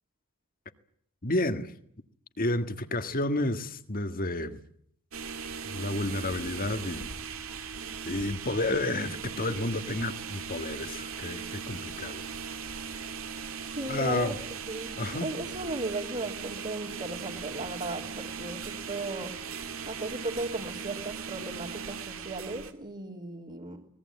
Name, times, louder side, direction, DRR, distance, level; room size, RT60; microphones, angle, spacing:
voice 1, 1.2-1.7 2.4-4.6 5.7-7.1 8.1-12.2 13.9-14.4 15.0-15.3, left 2 dB, 45° left, 1.7 m, -30 dB
sound 1, 5.1-22.7, right 6 dB, 75° right, 2.3 m, -39 dB
voice 2, 13.7-14.3 14.7-19.3 19.8-23.8, right 2 dB, 40° right, 3.2 m, -36 dB
24.5 x 20.0 x 8.6 m
head